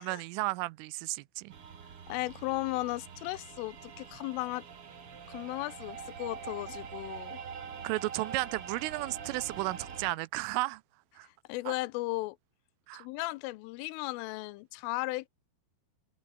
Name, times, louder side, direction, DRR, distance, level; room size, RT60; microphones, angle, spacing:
voice 1, 0.0-1.5 7.8-10.8 11.2-11.3 11.7-11.8 12.9-13.1, right 21 dB, 85° right, 3.1 m, -33 dB
sound 1, 1.5-10.1, right 6 dB, 40° right, 2.1 m, -44 dB
voice 2, 2.1-4.7 5.3-7.4 11.2-12.4 12.9-15.3, left 21 dB, 85° left, 3.2 m, -36 dB
open air
omnidirectional pair, 5.8 m